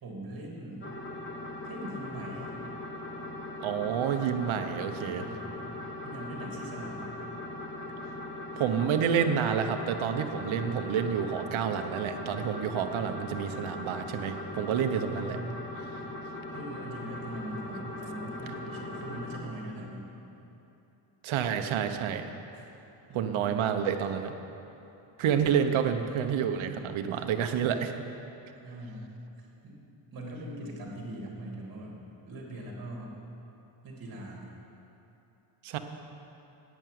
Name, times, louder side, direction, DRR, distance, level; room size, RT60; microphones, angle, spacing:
voice 1, 0.0-0.9 1.6-2.5 5.1-5.6 6.0-7.2 14.7-15.7 16.5-20.1 22.5-22.6 23.1-23.8 28.6-29.1 29.4-29.8 30.1-32.0 32.2-33.1 33.8-34.5, right 1 dB, 45° right, -1 dB, 2.9 m, -41 dB
sound 1, 0.8-19.4, left 2 dB, 25° left, 1.3 m, -40 dB
voice 2, 3.6-5.3 8.6-15.4 21.2-22.3 23.1-24.3 25.2-27.9 35.6-35.8, right 8 dB, 70° right, 7 dB, 1.1 m, -29 dB
10.5 x 9.2 x 9.4 m, 2.9 s
cardioid pair, 160°, 50 cm